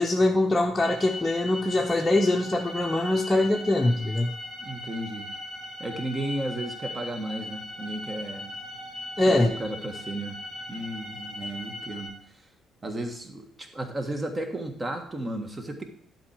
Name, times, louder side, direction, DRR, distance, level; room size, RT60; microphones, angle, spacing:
voice 1, 0.0-4.3 9.2-9.5, left 2 dB, 15° left, 0 dB, 0.9 m, -23 dB
sound 1, 0.8-12.1, left 1 dB, 55° right, 4.2 m, -39 dB
voice 2, 4.6-5.3 5.8-8.5 9.2-10.4 10.7-12.4 12.8-15.8, right 1 dB, 25° right, 6 dB, 1.6 m, -34 dB
11.0 x 4.6 x 5.0 m, 0.64 s
figure-of-eight pair, 45°, 0 cm